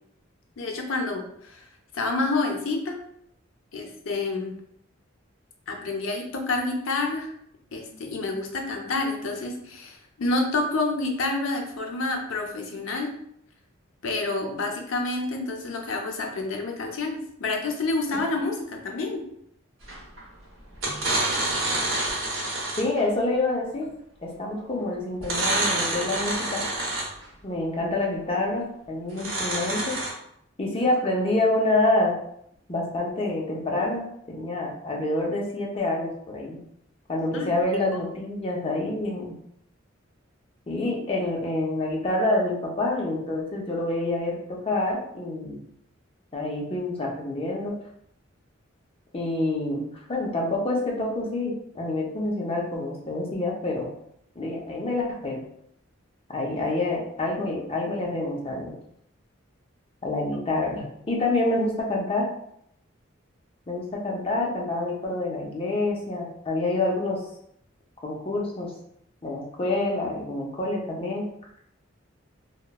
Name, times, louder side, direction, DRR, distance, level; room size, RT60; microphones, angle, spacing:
voice 1, 0.6-1.6 1.9-3.0 3.7-4.6 5.7-7.3 7.7-13.1 14.0-19.2 37.3-37.5, left 3 dB, 80° left, 2 dB, 0.5 m, -28 dB
sound 1, 19.9-20.2 20.7-23.0 25.2-27.3 29.1-30.1, right 2 dB, 90° right, 0.8 m, -27 dB
voice 2, 22.8-23.9 24.2-26.6 27.4-30.0 30.6-32.2 32.7-36.6 37.1-39.3 40.7-45.6 46.3-47.7 49.1-53.9 54.4-55.4 56.3-58.7 60.0-62.3 63.7-67.2 68.0-68.7 69.2-71.3, left 2 dB, 30° left, -2 dB, 0.5 m, -27 dB
2.9 x 2.1 x 2.2 m, 0.73 s
head